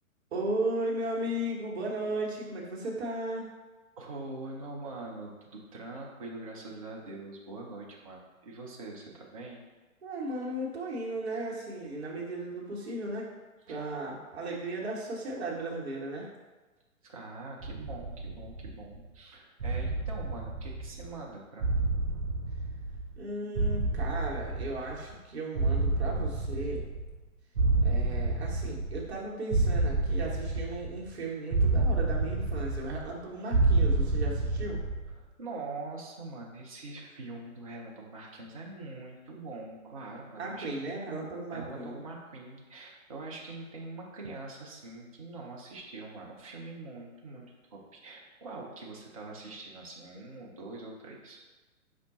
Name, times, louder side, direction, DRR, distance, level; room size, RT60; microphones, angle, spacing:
voice 1, 0.3-3.5 10.0-13.3 13.7-16.3 23.2-26.8 27.8-34.8 40.4-42.1, right 1 dB, 50° right, -3 dB, 1.0 m, -35 dB
voice 2, 4.0-9.6 13.7-13.8 17.0-21.8 35.1-40.7 41.5-51.4, right 2 dB, 25° right, -3 dB, 0.5 m, -43 dB
sound 1, 17.6-19.0 19.6-21.2 21.6-23.2 23.6-25.1 25.6-27.2 27.6-29.2 29.5-31.1 31.5-33.2 33.5-35.1, right 2 dB, 90° right, 0.6 m, -29 dB
5.3 x 2.1 x 3.9 m, 1.2 s
figure-of-eight pair, 130°, 43 cm